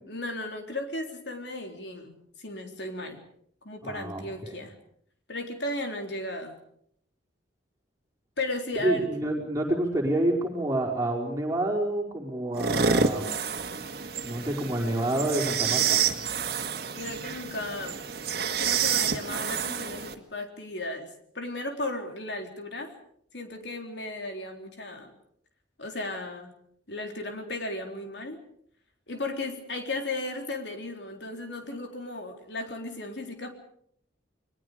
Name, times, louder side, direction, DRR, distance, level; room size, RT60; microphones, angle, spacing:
voice 1, 0.0-3.2 3.6-4.8 5.3-6.6 8.4-9.1 16.6-18.0 18.6-21.1 21.3-22.9 23.3-25.1 25.8-26.5 26.9-28.4 29.1-33.5, left 2 dB, 70° left, 4 dB, 3.8 m, -35 dB
voice 2, 3.8-4.6 8.7-13.4 14.2-16.0, right 1 dB, 20° right, 0 dB, 5.0 m, -28 dB
sound 1, 12.5-20.1, right 6 dB, 55° right, 2.0 m, -28 dB
30.0 x 22.0 x 5.1 m, 0.67 s
head